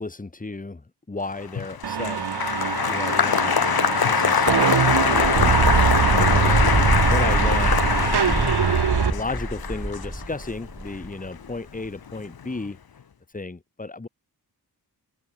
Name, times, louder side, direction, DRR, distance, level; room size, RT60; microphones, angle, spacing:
voice 1, 0.0-2.2 2.9-4.5 5.0-6.7 7.1-8.6 9.1-12.8 13.3-14.1, left 3 dB, 20° left, 3.7 m, -34 dB
Applause, 1.4-11.8 12.1-12.7, left 7 dB, 70° left, 3.1 m, -23 dB
sound 1, 1.8-9.1, right 8 dB, 90° right, 4.3 m, -23 dB
sound 2, 5.2-11.9, right 1 dB, 5° right, 1.3 m, -27 dB
open air
wide cardioid pair, 155°, 38 cm